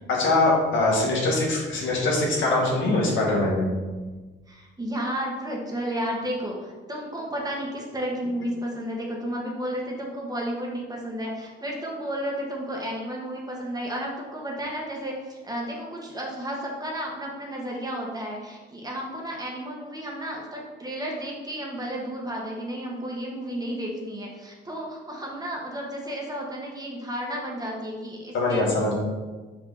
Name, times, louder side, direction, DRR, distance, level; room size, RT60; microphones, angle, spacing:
voice 1, 0.1-3.7 28.3-28.9, left 2 dB, 75° left, -3 dB, 1.9 m, -22 dB
voice 2, 4.5-28.6, equal, 20° right, -1 dB, 1.5 m, -32 dB
5.2 x 4.9 x 4.0 m, 1.3 s
cardioid pair, 90°, 20 cm